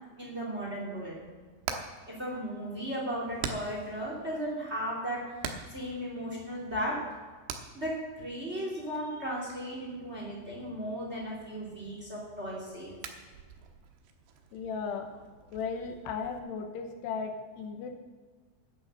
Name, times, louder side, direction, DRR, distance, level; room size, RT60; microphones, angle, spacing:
voice 1, 0.2-1.1 2.1-5.2 5.7-6.9 7.7-7.9 8.2-13.0, equal, 20° right, -3 dB, 2.6 m, -36 dB
Hammer, 1.2-16.4, right 6 dB, 80° right, 3.1 m, -46 dB
voice 2, 14.5-15.1 15.5-17.9, left 5 dB, 80° left, 5 dB, 3.1 m, -36 dB
11.0 x 9.3 x 6.8 m, 1.5 s
omnidirectional pair, 4.9 m